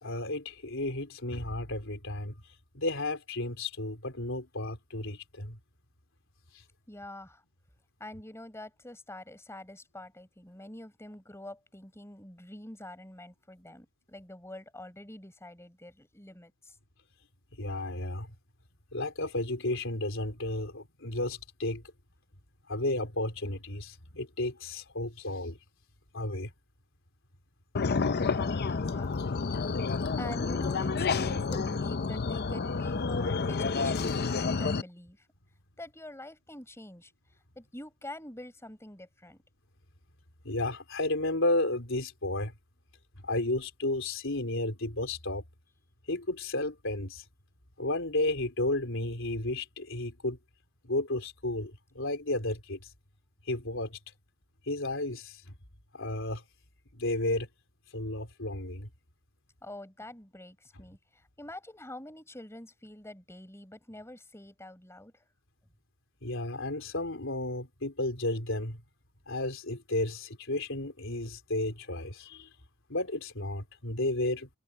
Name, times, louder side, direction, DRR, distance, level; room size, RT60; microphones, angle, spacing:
voice 1, 0.0-2.4 2.7-5.6 17.6-18.3 18.9-21.8 22.7-25.6 26.1-26.5 40.4-42.5 43.2-45.4 46.1-47.2 47.8-50.4 50.8-52.8 53.5-54.0 54.7-55.4 55.9-56.4 56.9-57.5 57.9-58.9 66.2-68.8 69.3-72.5 72.9-74.5, left 2 dB, 65° left, 4.1 m, -32 dB
voice 2, 6.9-7.4 8.0-16.7 28.1-29.5 29.9-35.3 35.8-37.1 37.5-39.4 59.6-65.2, left 1 dB, 10° left, 4.7 m, -46 dB
sound 1, 27.7-34.8, left 4 dB, 50° left, 0.6 m, -29 dB
head